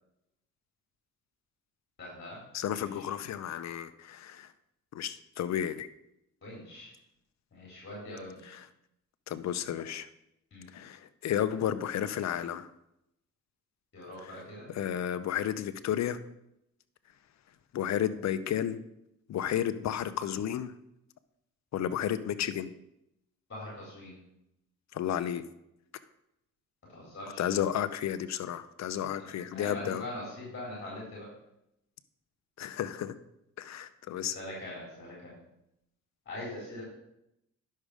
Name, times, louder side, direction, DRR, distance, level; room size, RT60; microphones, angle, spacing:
voice 1, 2.0-2.4 2.7-3.1 6.4-6.9 7.5-8.5 10.5-10.7 13.9-14.7 23.5-24.2 26.9-27.5 29.2-31.3 34.2-35.4 36.3-36.8, left 1 dB, 40° left, -5 dB, 4.2 m, -42 dB
voice 2, 2.5-4.5 4.9-5.9 8.5-8.6 9.3-10.1 10.7-12.7 14.7-16.2 17.7-18.8 19.3-20.8 21.7-22.7 24.9-25.4 27.4-30.0 32.6-33.2 33.6-34.3, left 10 dB, 60° left, 13 dB, 0.7 m, -32 dB
10.5 x 6.5 x 5.0 m, 0.82 s
cardioid pair, 90°, 30 cm